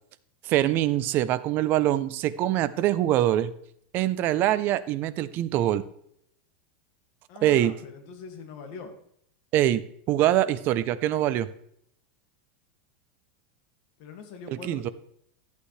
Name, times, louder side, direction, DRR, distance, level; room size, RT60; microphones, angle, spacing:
voice 1, 0.4-3.5 3.9-5.8 7.4-7.7 9.5-11.5 14.5-14.9, right 13 dB, 35° right, 14 dB, 0.6 m, -24 dB
voice 2, 7.3-8.9 14.0-14.9, left 5 dB, 45° left, 4 dB, 2.0 m, -43 dB
12.0 x 8.3 x 3.2 m, 0.70 s
supercardioid pair, 160°, 6 cm